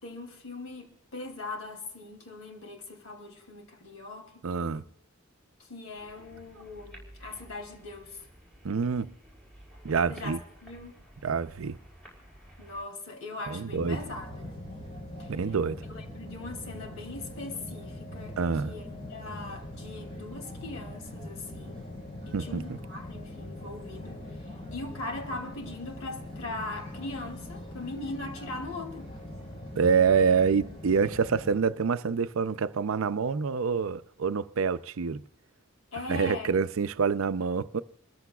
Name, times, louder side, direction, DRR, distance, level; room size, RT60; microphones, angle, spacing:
voice 1, 0.0-4.9 5.6-8.2 10.1-11.0 12.6-14.5 15.2-15.3 15.9-18.4 18.6-21.8 22.3-24.2 24.7-29.1 35.9-36.6, left 2 dB, 90° left, 2.8 m, -40 dB
voice 2, 4.4-4.8 8.6-9.1 9.8-10.4 11.2-11.8 13.5-14.0 15.3-15.8 18.4-18.7 22.3-22.8 29.8-35.2 36.1-37.8, right 5 dB, 85° right, 0.5 m, -26 dB
sound 1, 5.9-12.8, right 1 dB, ahead, 4.7 m, -52 dB
sound 2, 13.7-31.6, left 1 dB, 30° left, 4.1 m, -42 dB
28.5 x 14.0 x 2.3 m
head